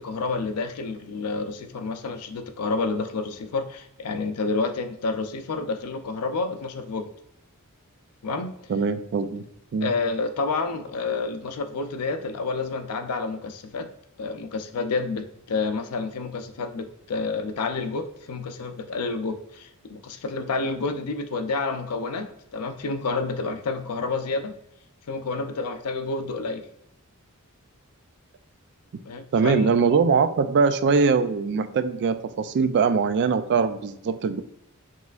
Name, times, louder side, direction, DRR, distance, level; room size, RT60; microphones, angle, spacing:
voice 1, 0.0-7.1 8.2-8.6 9.8-13.9 14.2-24.5 25.1-26.7 29.1-29.7, left 3 dB, 90° left, 8 dB, 0.5 m, -29 dB
voice 2, 8.7-9.4 9.7-9.9 29.3-34.4, right 5 dB, 50° right, 11 dB, 0.3 m, -22 dB
5.5 x 3.1 x 2.4 m, 0.78 s
head